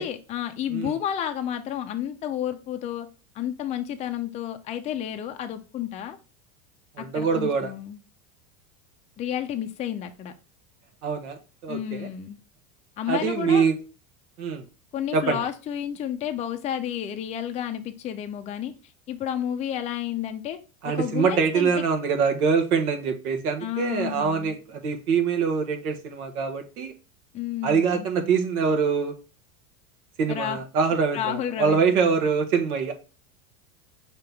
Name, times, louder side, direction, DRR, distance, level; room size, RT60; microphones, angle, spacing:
voice 1, 0.0-3.1 3.3-6.2 7.0-8.0 9.2-10.3 11.7-12.4 13.0-13.6 14.9-18.7 19.1-20.6 20.8-21.8 23.6-24.6 27.3-28.1 30.3-30.6 31.1-32.0, left 10 dB, 20° left, 6 dB, 0.3 m, -31 dB
voice 2, 7.0-7.7 11.0-11.4 11.6-12.1 13.1-13.8 14.4-14.6 15.1-15.4 20.8-26.9 27.6-29.1 30.2-32.9, right 5 dB, 90° right, 5 dB, 1.1 m, -24 dB
5.4 x 2.9 x 3.4 m, 0.33 s
supercardioid pair, 115°, 43 cm